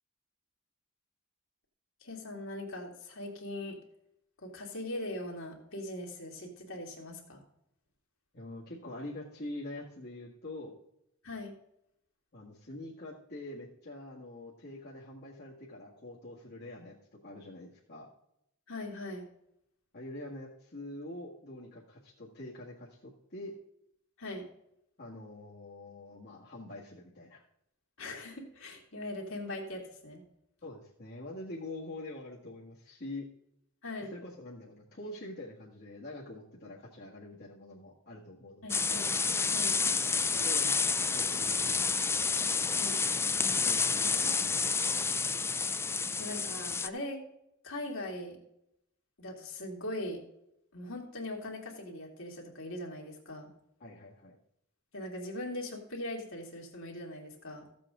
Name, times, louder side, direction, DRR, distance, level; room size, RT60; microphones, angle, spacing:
voice 1, 2.0-3.8 4.4-7.4 11.2-11.5 18.7-19.3 24.2-24.5 28.0-30.2 33.8-34.1 38.6-39.1 39.5-39.8 42.8-43.0 46.2-47.2 47.6-48.4 49.2-50.2 50.7-53.5 54.9-57.7, left 1 dB, 65° left, -1 dB, 2.5 m, -40 dB
voice 2, 8.3-10.8 12.3-17.0 17.2-18.1 19.9-23.5 25.0-27.4 30.6-33.3 34.1-38.9 40.3-42.0 43.6-45.1 53.8-54.4, left 1 dB, 50° left, -6 dB, 1.9 m, -45 dB
sound 1, 38.7-46.9, left 5 dB, 10° left, 0.3 m, -29 dB
15.0 x 7.7 x 3.8 m, 0.78 s
head